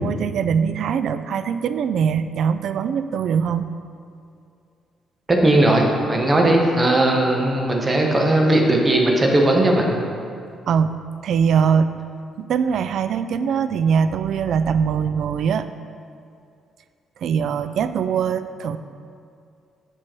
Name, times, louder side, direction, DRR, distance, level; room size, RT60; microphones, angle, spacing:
voice 1, 0.0-3.7 10.7-12.0 12.4-15.7 17.2-18.8, right 7 dB, 70° right, 12 dB, 0.3 m, -22 dB
voice 2, 5.3-10.0, right 1 dB, 25° right, 1 dB, 1.3 m, -18 dB
7.6 x 6.1 x 4.5 m, 2.4 s
cardioid pair, 90°, 0 cm